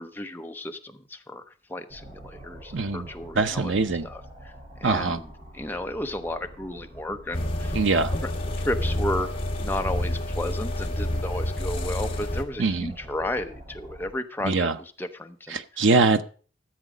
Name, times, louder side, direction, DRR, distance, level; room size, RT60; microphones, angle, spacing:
voice 1, 0.0-1.4 1.7-3.7 4.0-4.5 4.8-5.3 5.5-7.7 8.2-8.3 8.6-9.3 9.6-15.6, left 1 dB, 10° left, 6 dB, 0.8 m, -33 dB
sound 1, 1.9-14.1, right 1 dB, 30° right, 5.5 m, -45 dB
voice 2, 2.7-3.1 3.4-4.1 4.8-5.2 7.7-8.1 12.6-12.9 14.4-14.8 15.5-16.2, right 3 dB, 90° right, 9 dB, 0.8 m, -23 dB
sound 2, 7.3-12.4, left 1 dB, 30° left, 1.8 m, -28 dB
13.5 x 7.5 x 5.0 m, 0.40 s
head